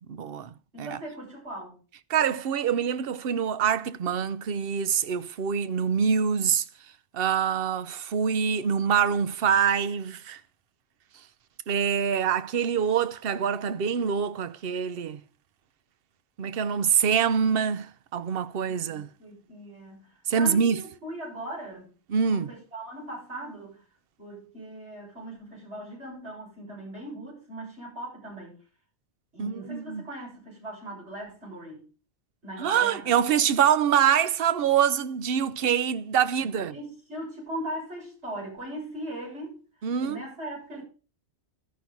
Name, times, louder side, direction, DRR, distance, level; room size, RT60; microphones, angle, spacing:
voice 1, 0.1-0.5 0.8-1.0 2.1-6.6 7.1-10.4 11.7-15.2 16.4-19.1 20.3-20.8 22.1-22.5 29.4-30.0 32.6-36.8 39.8-40.2, right 7 dB, 60° right, 0.9 m, -25 dB
voice 2, 0.7-1.8 18.6-21.9 22.2-23.8 24.2-28.6 29.3-31.8 32.4-33.2 36.4-39.6 40.0-40.8, right 1 dB, 80° right, 7.9 m, -39 dB
13.5 x 6.0 x 5.2 m
omnidirectional pair, 1.1 m